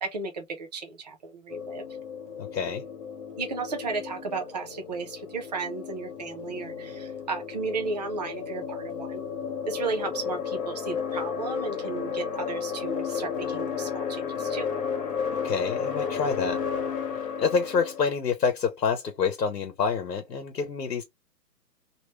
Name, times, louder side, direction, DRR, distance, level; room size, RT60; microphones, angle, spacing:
voice 1, 0.0-1.8 3.4-9.2 9.7-14.7, right 4 dB, 25° right, 0.6 m, -34 dB
sound 1, 1.5-18.0, left 6 dB, 25° left, 1.1 m, -33 dB
voice 2, 2.4-2.8 15.4-16.6 17.4-21.0, left 5 dB, 70° left, 1.1 m, -27 dB
3.0 x 3.0 x 3.0 m
hypercardioid pair, 150°, 49 cm